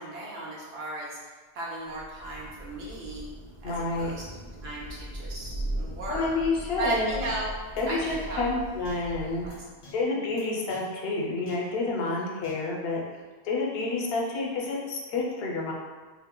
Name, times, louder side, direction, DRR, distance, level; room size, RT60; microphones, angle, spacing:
voice 1, 0.0-3.3 3.6-4.2 4.6-6.3 6.8-7.5 7.9-8.4 9.4-9.5, right 2 dB, 75° right, -4 dB, 1.0 m, -36 dB
Thunder / Rain, 1.9-9.9, right 1 dB, 50° right, 0.8 m, -39 dB
voice 2, 3.6-4.1 6.1-7.1 7.8-9.5 9.9-13.0 13.4-15.7, left 3 dB, 75° left, -2 dB, 0.8 m, -29 dB
sound 1, 6.9-7.0 7.2-7.3 7.8-7.9 8.1-8.2 8.8-8.9 9.5-9.6 9.8-9.9 10.4-10.5 10.7-10.8 11.5-11.6 12.4-12.5, left 2 dB, 45° left, 0.6 m, -48 dB
2.5 x 2.1 x 3.6 m, 1.3 s
omnidirectional pair, 1.0 m